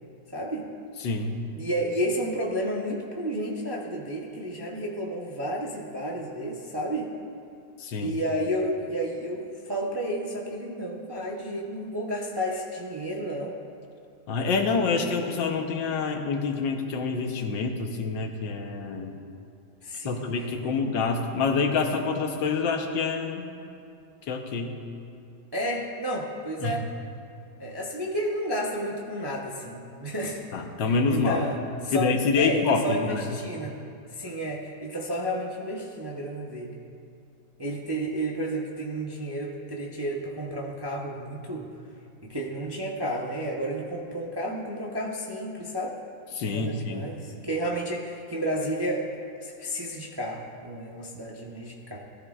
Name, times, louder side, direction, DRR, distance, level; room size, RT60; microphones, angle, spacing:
voice 1, 0.3-0.7 1.5-7.1 7.9-13.5 19.8-20.3 20.6-20.7 25.5-26.9 27.6-30.4 30.8-31.6 31.8-32.1 32.3-33.8 34.1-36.7 37.6-41.7 42.2-46.0 46.5-49.1 49.4-52.0, right 1 dB, 25° right, -2 dB, 0.5 m, -31 dB
voice 2, 1.0-1.4 7.8-8.1 14.3-19.2 20.1-23.5 24.3-24.7 26.6-26.8 30.5-31.4 31.9-33.4 46.4-47.1, left 4 dB, 85° left, 3 dB, 1.7 m, -27 dB
18.5 x 14.0 x 2.4 m, 2.6 s
omnidirectional pair, 2.0 m